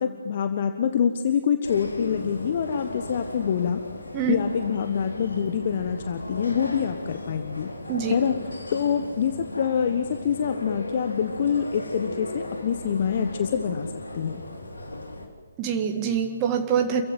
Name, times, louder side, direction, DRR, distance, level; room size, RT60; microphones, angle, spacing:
voice 1, 0.0-3.8 4.3-7.7 8.1-14.4, left 7 dB, 40° left, 8 dB, 1.3 m, -26 dB
sound 1, 1.6-15.3, left 2 dB, 75° left, 3.8 m, -36 dB
voice 2, 15.6-17.0, right 8 dB, 25° right, 4 dB, 1.9 m, -25 dB
28.5 x 15.5 x 9.3 m, 1.5 s
figure-of-eight pair, 135°, 0 cm